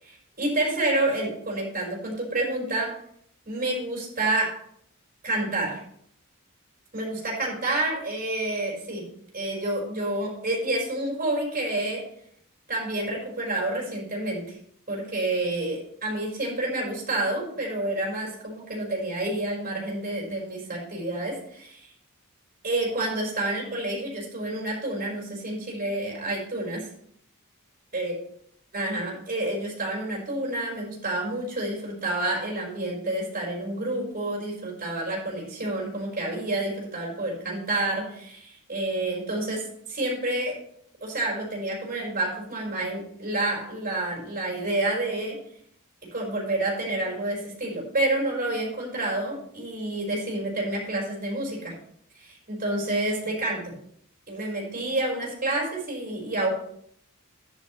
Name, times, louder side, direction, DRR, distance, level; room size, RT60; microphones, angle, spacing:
voice 1, 0.0-3.0 3.5-4.6 5.2-5.8 6.9-9.1 9.3-12.1 12.7-14.6 14.9-21.9 22.6-26.9 27.9-28.1 28.7-40.6 41.0-45.4 46.1-51.7 52.2-53.7 54.3-56.5, right 2 dB, 40° right, -3 dB, 5.2 m, -29 dB
11.5 x 10.5 x 3.3 m, 0.66 s
head